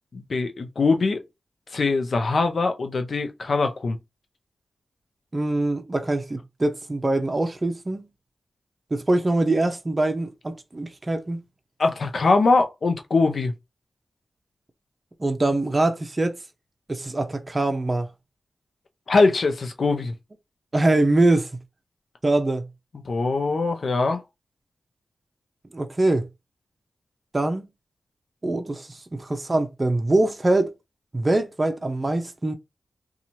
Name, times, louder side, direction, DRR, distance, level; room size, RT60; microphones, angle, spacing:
voice 1, 0.1-1.2 1.7-4.0 11.8-13.5 19.1-20.1 23.1-24.2, left 3 dB, 65° left, 0.6 m, -22 dB
voice 2, 5.3-8.1 8.9-11.4 15.2-16.4 16.9-18.1 20.7-21.5 22.2-22.7 25.7-26.3 27.3-27.6 28.4-30.7 31.1-32.6, right 2 dB, 35° right, 0.5 m, -23 dB
2.9 x 2.3 x 2.7 m
cardioid pair, 45°, 0 cm